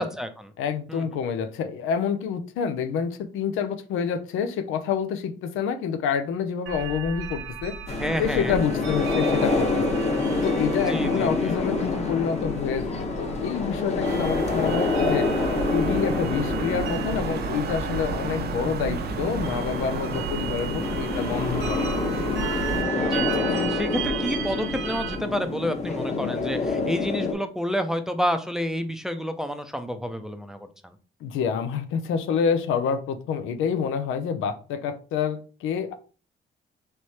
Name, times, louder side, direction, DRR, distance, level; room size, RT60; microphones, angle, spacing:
voice 1, 0.0-0.5 0.9-1.0 8.0-8.6 10.9-11.5 23.0-30.9, equal, 5° right, 8 dB, 0.5 m, -29 dB
voice 2, 0.6-7.7 8.2-10.0 10.4-15.3 15.6-22.0 31.2-35.9, left 7 dB, 85° left, 9 dB, 0.6 m, -28 dB
sound 1, 6.7-25.2, right 6 dB, 75° right, 1.0 m, -36 dB
sound 2, 7.9-27.3, left 3 dB, 35° left, 1.0 m, -27 dB
sound 3, 14.0-22.8, right 5 dB, 55° right, 0.7 m, -32 dB
3.2 x 3.2 x 4.2 m, 0.38 s
cardioid pair, 90°, 20 cm